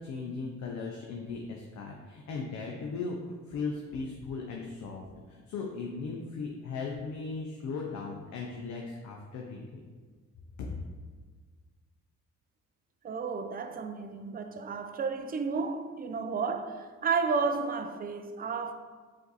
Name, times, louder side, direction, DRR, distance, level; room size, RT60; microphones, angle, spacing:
voice 1, 0.0-5.0 5.3-9.8 10.6-10.7, left 4 dB, 65° left, 0.6 m, -37 dB
voice 2, 13.0-18.7, right 5 dB, 30° right, 0.4 m, -32 dB
5.0 x 2.6 x 4.0 m
cardioid pair, 90°, 30 cm